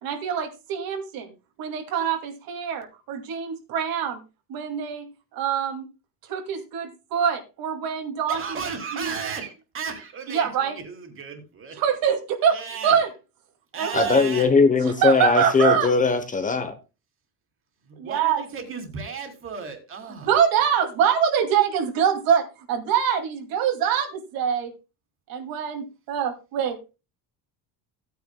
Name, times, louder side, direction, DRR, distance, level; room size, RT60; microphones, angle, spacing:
voice 1, 0.0-1.3 1.6-4.2 4.5-5.1 5.3-5.9 6.3-8.4 8.9-9.1 10.3-10.7 11.8-12.6 12.8-13.1 13.8-14.2 14.8-15.9 18.0-18.4 20.3-24.7 25.3-27.0, right 8 dB, 65° right, 2.4 m, -24 dB
voice 2, 8.3-11.8 12.4-13.0 13.7-14.5 15.0-15.4 17.8-20.3, right 5 dB, 35° right, 2.8 m, -35 dB
voice 3, 13.9-16.8, left 4 dB, 20° left, 0.8 m, -20 dB
16.5 x 9.4 x 2.2 m
cardioid pair, 175°, 38 cm